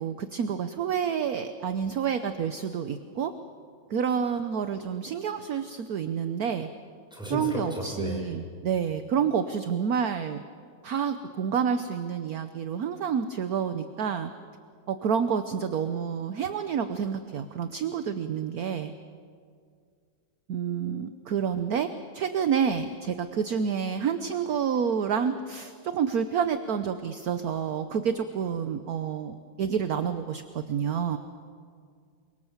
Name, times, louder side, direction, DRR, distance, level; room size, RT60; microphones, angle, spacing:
voice 1, 0.0-3.3 3.9-6.7 7.3-10.4 10.8-14.3 14.9-18.9 20.5-31.2, right 7 dB, 60° right, 9 dB, 1.2 m, -29 dB
voice 2, 7.1-8.2, equal, ahead, -1 dB, 5.5 m, -33 dB
29.0 x 24.0 x 7.3 m, 2.1 s
omnidirectional pair, 2.1 m